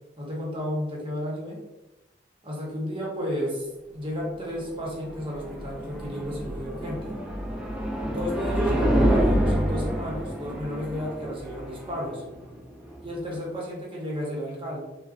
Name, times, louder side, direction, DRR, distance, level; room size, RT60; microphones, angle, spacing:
voice 1, 0.2-1.6 2.4-7.2 8.0-12.2 13.0-14.8, equal, 30° right, -3 dB, 0.8 m, -32 dB
sound 1, 4.4-13.4, right 1 dB, 5° right, 0.3 m, -28 dB
3.8 x 2.1 x 2.3 m, 1.0 s
head